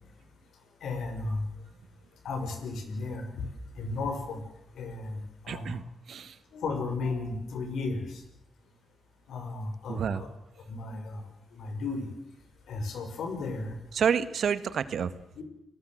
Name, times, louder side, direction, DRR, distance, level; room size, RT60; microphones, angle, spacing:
voice 1, 0.8-1.4 2.2-3.5 3.8-4.4 4.7-5.8 6.5-8.2 9.3-10.3 10.7-11.3 11.5-12.1 12.7-13.7 15.4-15.5, left 3 dB, 85° left, 6 dB, 6.1 m, -34 dB
voice 2, 5.5-6.4 9.9-10.2 13.9-15.2, right 7 dB, 75° right, 14 dB, 1.6 m, -29 dB
30.0 x 18.5 x 8.0 m, 0.81 s
cardioid pair, 70°, 0 cm